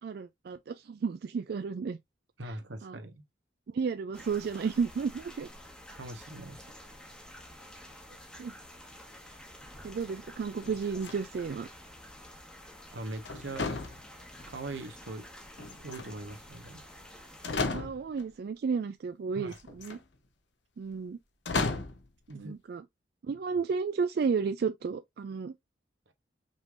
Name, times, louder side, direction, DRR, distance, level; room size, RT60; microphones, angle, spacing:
voice 1, 0.0-2.0 2.5-2.6 2.8-3.0 3.7-5.5 8.4-8.5 9.8-11.7 17.7-20.0 20.8-21.2 22.3-22.8 23.2-25.5, right 5 dB, 55° right, 0.3 m, -32 dB
voice 2, 2.4-3.2 5.9-6.6 12.9-13.7 14.4-15.3 15.6-16.8 19.3-19.6 22.3-22.5, right 2 dB, 85° right, 1.1 m, -41 dB
sound 1, 4.1-17.6, left 1 dB, 5° left, 1.0 m, -50 dB
sound 2, 10.6-11.5 13.2-14.5 15.6-16.4 17.0-17.1 17.4-18.3 19.5-20.0 21.4-22.1, left 3 dB, 70° left, 0.9 m, -34 dB
5.3 x 3.3 x 2.4 m
head